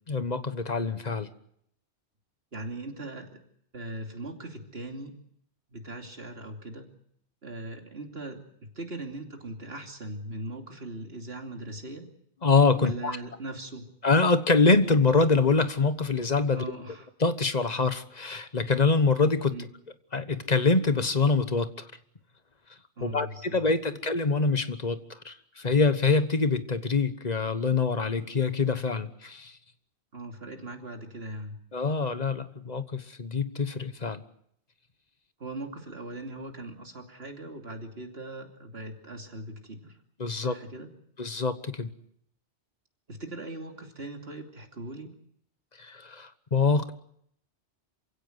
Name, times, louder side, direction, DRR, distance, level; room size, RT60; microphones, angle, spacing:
voice 1, 0.1-1.3 12.4-13.2 14.0-16.6 17.2-19.5 20.1-21.9 23.0-29.5 31.7-34.2 40.2-40.5 41.2-41.9 45.8-46.9, left 4 dB, 40° left, 11 dB, 1.3 m, -25 dB
voice 2, 2.5-3.3 3.7-5.1 5.7-6.9 7.4-12.0 12.8-13.9 16.5-17.1 19.5-19.7 23.0-24.0 30.1-31.6 35.4-40.0 40.3-40.9 43.1-45.1, right 2 dB, 60° right, 3 dB, 3.1 m, -40 dB
27.5 x 16.5 x 8.0 m, 0.70 s
omnidirectional pair, 1.2 m